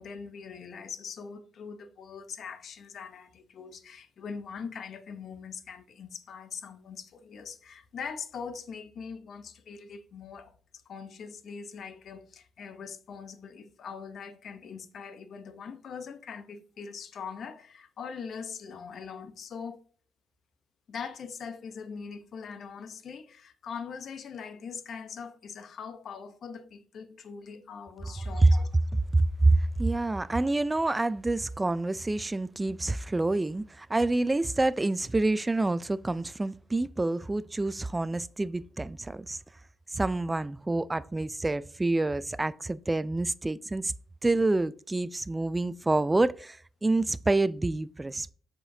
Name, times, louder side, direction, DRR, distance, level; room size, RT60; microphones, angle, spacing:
voice 1, 0.0-10.5 10.9-19.8 20.9-28.7, left 6 dB, 60° left, 0.7 m, -42 dB
voice 2, 28.9-39.4 39.9-43.9 44.2-48.3, right 2 dB, 15° right, 0.3 m, -27 dB
7.4 x 5.0 x 2.7 m
cardioid pair, 90°, 0 cm